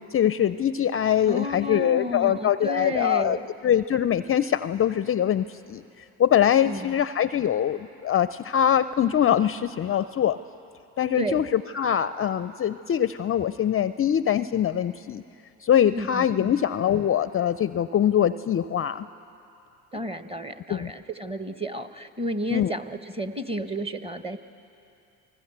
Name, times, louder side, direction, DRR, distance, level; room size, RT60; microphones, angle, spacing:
voice 1, 0.0-3.4 3.6-5.8 6.2-10.4 11.0-15.2 15.6-19.1 20.7-20.9 22.5-22.7, left 10 dB, 35° left, 14 dB, 0.5 m, -23 dB
voice 2, 1.3-3.5 6.6-6.9 11.2-11.4 15.9-16.6 19.9-24.4, right 1 dB, 15° right, 9 dB, 1.3 m, -32 dB
29.0 x 19.5 x 8.1 m, 2.8 s
hypercardioid pair, 70°, 41 cm